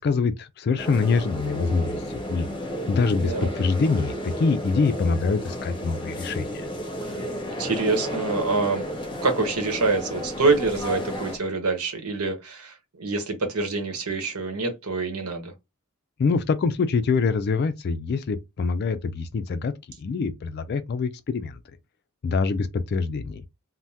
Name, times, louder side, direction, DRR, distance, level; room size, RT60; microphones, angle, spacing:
voice 1, 0.0-2.0 2.3-2.5 2.9-6.5 16.2-21.6 22.2-23.4, left 4 dB, 45° left, 0.3 m, -25 dB
sound 1, 0.8-11.4, equal, 20° left, 0.7 m, -32 dB
voice 2, 3.2-3.5 7.0-7.1 7.6-8.8 9.2-15.5, right 3 dB, 80° right, 1.0 m, -26 dB
3.3 x 2.1 x 2.7 m
head